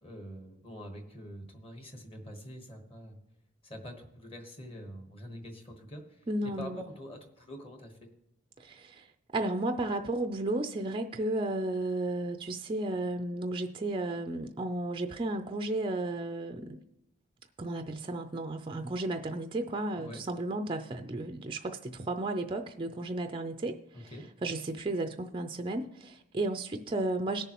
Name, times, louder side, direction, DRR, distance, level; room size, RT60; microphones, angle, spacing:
voice 1, 0.0-3.2 3.6-8.1 19.9-20.2 23.9-24.3, equal, 25° left, 4 dB, 1.2 m, -45 dB
voice 2, 6.3-6.8 8.6-9.0 9.3-16.8 17.6-23.8 24.4-27.4, right 2 dB, 20° right, 7 dB, 0.4 m, -33 dB
20.5 x 6.9 x 3.0 m, 0.88 s
head